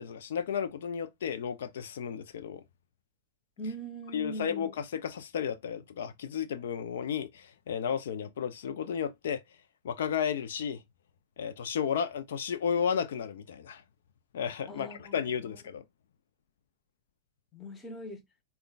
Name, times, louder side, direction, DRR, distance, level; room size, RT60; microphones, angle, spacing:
voice 1, 0.0-2.6 4.1-9.4 9.8-10.8 11.4-13.8 14.3-15.8, left 7 dB, 75° left, 0.5 m, -33 dB
voice 2, 3.6-4.7 14.7-15.2 17.5-18.2, right 1 dB, 20° left, 1.0 m, -40 dB
5.1 x 2.3 x 2.3 m
hypercardioid pair, 115°, 0 cm